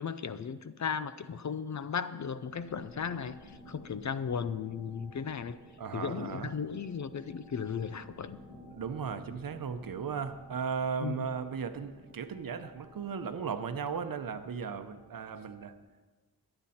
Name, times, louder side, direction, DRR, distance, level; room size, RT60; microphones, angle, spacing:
voice 1, 0.0-5.6 5.9-8.4 11.0-11.3, left 6 dB, 50° left, 13 dB, 0.5 m, -36 dB
sound 1, 2.4-15.8, equal, 20° left, 3.3 m, -54 dB
voice 2, 5.8-6.5 8.7-15.7, right 6 dB, 60° right, 9 dB, 0.8 m, -36 dB
22.5 x 8.9 x 4.3 m, 1.3 s
wide cardioid pair, 170°, 38 cm